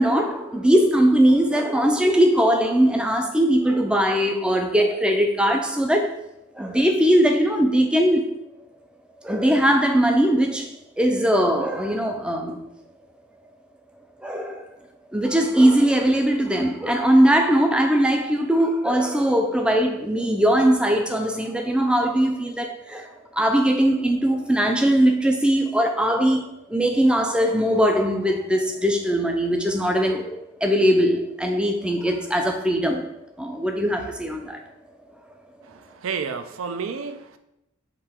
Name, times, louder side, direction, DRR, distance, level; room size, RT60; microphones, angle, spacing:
voice 1, 0.0-6.1 6.6-8.2 9.2-10.7 11.0-12.6 14.2-14.6 15.1-33.1 33.4-34.6, equal, 5° right, 0.3 m, -20 dB
voice 2, 35.7-37.4, right 6 dB, 75° right, 0.4 m, -31 dB
3.8 x 2.9 x 4.3 m
head